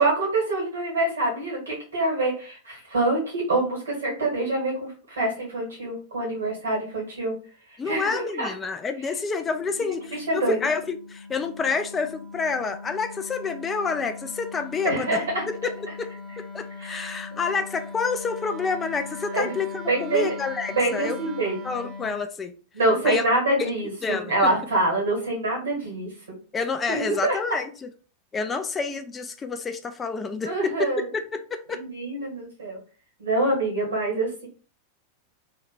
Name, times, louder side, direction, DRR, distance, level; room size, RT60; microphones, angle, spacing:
voice 1, 0.0-7.4 7.7-8.5 10.1-10.6 14.8-15.4 16.8-17.2 19.3-19.5 19.8-20.3 20.7-21.6 22.7-26.4 26.9-27.4 30.4-31.1 31.7-32.8 33.2-34.5, right 2 dB, 70° right, 1.8 m, -25 dB
voice 2, 7.8-15.2 15.6-15.7 16.0-16.1 16.4-21.2 21.6-22.5 23.0-23.2 23.6-23.7 24.0-24.5 26.5-27.7 28.3-30.9 31.3-31.8, left 5 dB, 20° left, 0.3 m, -28 dB
Wind instrument woodwind instrument, 9.3-22.2, left 3 dB, 35° right, 0.8 m, -40 dB
3.2 x 2.7 x 3.1 m
figure-of-eight pair, 90°, 0 cm